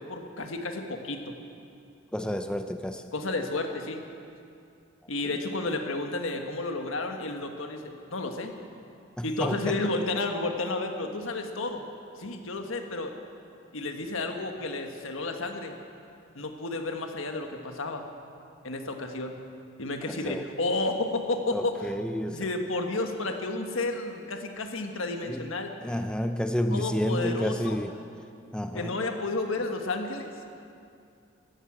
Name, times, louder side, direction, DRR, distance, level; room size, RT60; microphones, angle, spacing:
voice 1, 0.0-1.3 3.1-4.0 5.1-8.5 9.2-11.8 12.2-13.1 13.7-15.7 16.3-18.1 18.6-19.3 19.8-21.9 22.3-25.7 26.7-27.8 28.7-30.3, left 2 dB, 85° left, 4 dB, 1.5 m, -31 dB
voice 2, 2.1-3.0 5.2-5.4 9.2-9.8 20.1-20.5 21.5-22.5 25.2-25.5 25.8-28.0 28.5-28.9, equal, 5° left, 7 dB, 0.4 m, -30 dB
14.0 x 11.0 x 8.7 m, 2.5 s
head